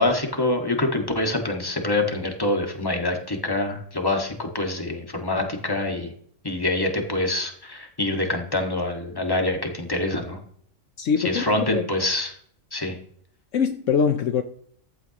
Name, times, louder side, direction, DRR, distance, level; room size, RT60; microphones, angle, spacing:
voice 1, 0.0-6.1 6.4-10.4 11.2-12.3 12.7-13.0, left 2 dB, 15° left, 1.8 m, -25 dB
voice 2, 11.0-11.4 11.7-11.9 13.5-14.4, left 6 dB, 70° left, 1.1 m, -22 dB
15.0 x 11.5 x 3.0 m
omnidirectional pair, 1.4 m